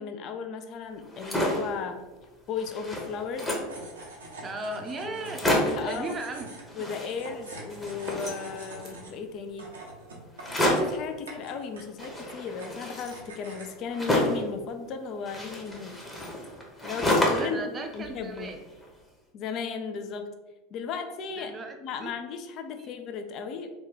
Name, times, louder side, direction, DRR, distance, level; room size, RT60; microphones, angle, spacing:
voice 1, 0.0-2.0 2.5-3.5 5.0-5.2 5.5-6.2 6.8-9.7 10.7-16.4 16.8-18.5 19.3-20.3 20.7-23.7, left 6 dB, 50° left, 7 dB, 0.4 m, -36 dB
sound 1, 1.0-1.7 2.2-2.3 2.6-3.8 4.4-4.5 4.8-4.9 5.2-5.9 6.6-7.4 7.7-9.0 10.4-11.0 12.0-14.5 15.3-17.6 17.9-18.8, left 1 dB, 10° left, 0.9 m, -29 dB
sound 2, 3.7-13.8, right 1 dB, 85° right, 0.7 m, -45 dB
voice 2, 4.4-6.5 17.4-18.6 21.3-22.1 22.7-22.9, right 3 dB, 25° right, 4 dB, 0.5 m, -37 dB
3.0 x 2.3 x 3.7 m, 1.1 s
hypercardioid pair, 90°, 0 cm